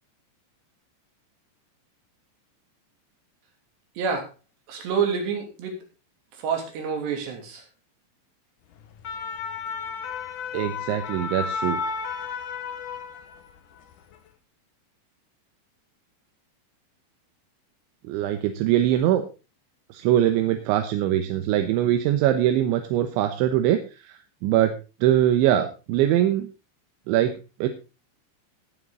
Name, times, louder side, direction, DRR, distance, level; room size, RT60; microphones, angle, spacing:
voice 1, 4.0-4.3 4.7-5.8 6.3-7.6, right 6 dB, 65° right, 3 dB, 5.0 m, -28 dB
sound 1, 8.8-13.6 13.9-14.2, left 5 dB, 70° left, 1.9 m, -32 dB
voice 2, 10.5-11.8 18.1-19.2 19.9-24.7 25.0-26.5 27.1-27.3 27.6-27.7, right 12 dB, 85° right, 7 dB, 3.4 m, -22 dB
18.5 x 7.6 x 3.8 m, 0.31 s
omnidirectional pair, 5.3 m